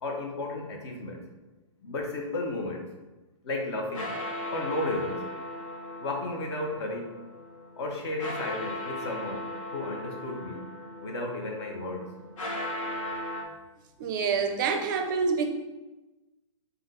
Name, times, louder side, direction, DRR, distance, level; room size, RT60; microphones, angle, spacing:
voice 1, 0.0-1.2 1.8-2.9 3.4-4.1 4.5-5.3 6.0-7.2 7.8-9.5 9.7-10.7 11.0-12.1, left 2 dB, 55° left, 1 dB, 0.9 m, -33 dB
sound 1, 3.7-13.4, left 1 dB, 75° left, 1.1 m, -38 dB
voice 2, 14.0-15.5, right 5 dB, 40° right, 5 dB, 0.4 m, -27 dB
5.0 x 2.3 x 3.7 m, 1.1 s
hypercardioid pair, 145°, 17 cm